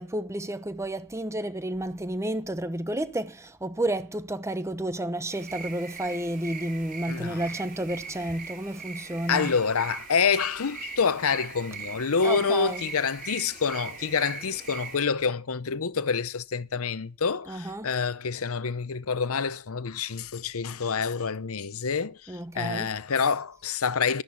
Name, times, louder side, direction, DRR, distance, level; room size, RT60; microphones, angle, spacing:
voice 1, 0.0-9.5 12.2-12.8 17.5-17.9 22.3-22.9, right 1 dB, 15° right, 1.0 m, -31 dB
sound 1, 5.3-15.0, right 5 dB, 40° right, 4.3 m, -40 dB
voice 2, 7.1-7.5 9.3-24.2, left 5 dB, 70° left, 0.8 m, -27 dB
13.0 x 10.5 x 8.5 m
head